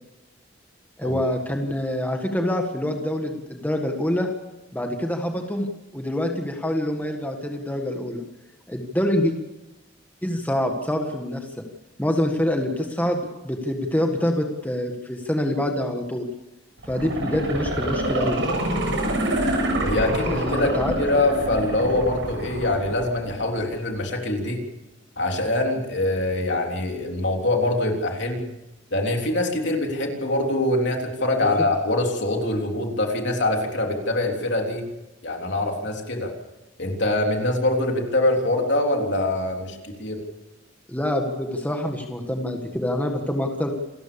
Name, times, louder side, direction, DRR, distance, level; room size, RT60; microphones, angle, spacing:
voice 1, 1.0-4.3 4.7-5.7 5.9-8.2 8.7-9.3 10.2-11.5 12.0-16.3 16.8-18.4 20.2-20.9 31.4-31.5 38.4-38.5 40.9-43.7, left 1 dB, 10° left, 3 dB, 1.7 m, -26 dB
sound 1, 16.8-23.8 24.2-24.3, right 1 dB, 65° right, 6.7 m, -26 dB
voice 2, 19.8-24.6 25.2-28.5 28.9-34.9 35.2-36.3 36.8-40.2, left 1 dB, 60° left, 2 dB, 3.6 m, -24 dB
28.0 x 14.0 x 7.1 m, 1.0 s
head